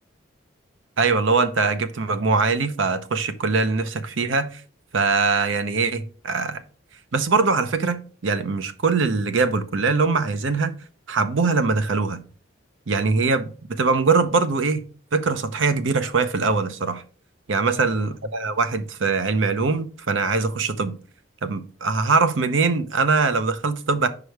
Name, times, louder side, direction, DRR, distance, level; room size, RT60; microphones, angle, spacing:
voice 1, 1.0-4.6 4.9-6.6 7.1-10.8 11.1-12.2 12.9-14.9 15.1-17.0 17.5-21.0 21.4-24.1, right 4 dB, 60° right, 0.6 m, -22 dB
5.2 x 4.9 x 4.6 m
head